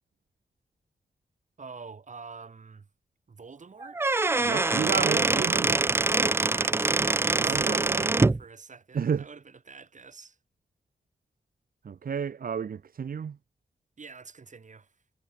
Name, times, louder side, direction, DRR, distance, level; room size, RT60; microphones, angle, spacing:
voice 1, 1.6-2.9 3.3-4.0 6.4-10.4 14.0-14.9, right 5 dB, 55° right, 6.8 m, -46 dB
Squeak / Wood, 3.8-8.4, right 3 dB, 15° right, 0.3 m, -24 dB
voice 2, 4.4-6.0 7.4-8.1 8.9-9.3 11.8-13.4, right 7 dB, 75° right, 1.6 m, -31 dB
wide cardioid pair, 85°, 15 cm